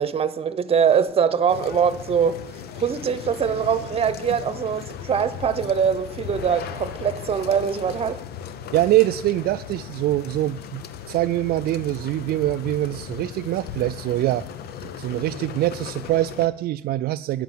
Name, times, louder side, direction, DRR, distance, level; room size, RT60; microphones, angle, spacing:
voice 1, 0.0-2.4 2.7-8.2, right 7 dB, 35° right, 1.0 m, -22 dB
sound 1, 1.5-16.5, left 8 dB, 70° left, 0.8 m, -37 dB
voice 2, 8.7-14.5 14.8-17.4, right 15 dB, 65° right, 0.4 m, -24 dB
11.5 x 9.3 x 7.4 m
cardioid pair, 110°, 17 cm